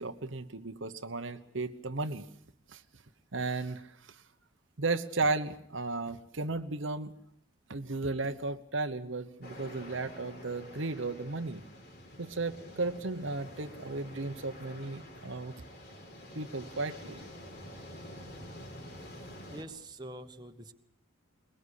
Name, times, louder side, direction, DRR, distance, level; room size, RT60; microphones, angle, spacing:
voice 1, 0.0-2.2 2.7-2.8 3.3-4.2 4.8-7.1 7.7-11.6 12.2-15.5 16.3-17.2, right 3 dB, 60° right, 9 dB, 1.0 m, -35 dB
sound 1, 9.4-19.6, left 1 dB, 50° left, 4.6 m, -48 dB
voice 2, 19.5-20.7, right 1 dB, 20° right, 5 dB, 1.3 m, -45 dB
22.0 x 21.5 x 8.4 m, 0.68 s
head